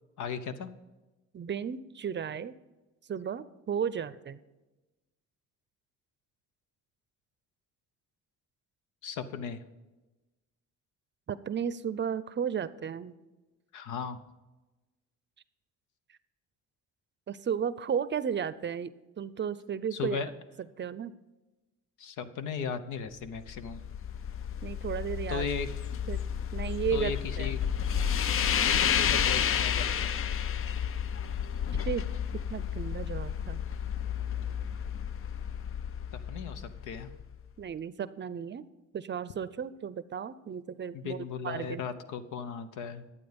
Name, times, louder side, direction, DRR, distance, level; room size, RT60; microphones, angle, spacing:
voice 1, 0.2-0.7 9.0-9.6 13.7-14.2 19.9-20.3 22.0-23.8 25.3-25.7 26.9-27.6 28.6-30.2 36.3-37.1 40.9-43.0, left 6 dB, 80° left, 11 dB, 0.9 m, -36 dB
voice 2, 1.3-2.6 3.1-4.4 11.3-13.1 17.3-20.2 20.8-21.1 24.6-25.5 26.1-26.2 26.5-27.1 27.4-27.5 31.7-32.0 32.5-33.6 37.6-38.7 38.9-41.2 41.4-41.8, right 7 dB, 35° right, 16 dB, 0.5 m, -34 dB
sound 1, 23.3-37.4, left 8 dB, 45° left, 0.5 m, -31 dB
11.5 x 8.3 x 5.2 m, 1.1 s
cardioid pair, 90°, 30 cm